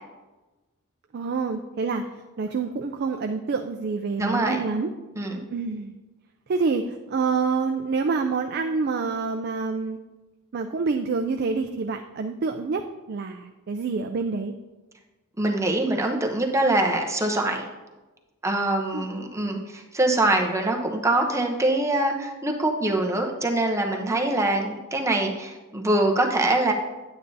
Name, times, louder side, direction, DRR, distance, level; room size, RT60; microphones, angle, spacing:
voice 1, 1.1-2.0 2.4-4.9 5.5-5.9 6.5-10.0 10.5-14.5 18.9-19.1, right 4 dB, 45° right, 5 dB, 0.4 m, -27 dB
voice 2, 4.2-4.6 5.2-5.4 15.4-17.6 18.4-26.7, right 2 dB, 15° right, 2 dB, 0.7 m, -24 dB
9.5 x 8.9 x 2.7 m, 1.2 s
head